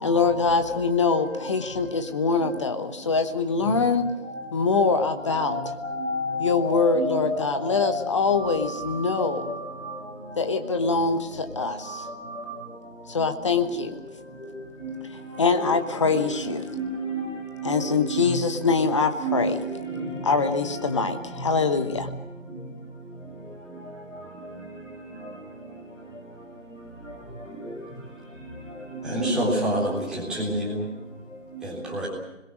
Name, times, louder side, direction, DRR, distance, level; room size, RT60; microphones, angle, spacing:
voice 1, 0.0-4.1 4.5-5.6 6.4-9.4 10.4-12.0 13.1-14.0 15.4-16.6 17.6-19.6 20.2-22.1, left 4 dB, 25° left, 1.2 m, -24 dB
voice 2, 5.4-8.0 8.4-9.6 9.8-9.9 15.6-15.7 16.1-16.2 16.7-17.2 17.6-18.2 19.2-19.6 19.9-20.1 29.2-29.3, right 1 dB, 75° left, 7.4 m, -30 dB
voice 3, 29.0-30.9 31.6-32.1, equal, ahead, 3.7 m, -27 dB
27.0 x 21.5 x 6.4 m
figure-of-eight pair, 155°, 38 cm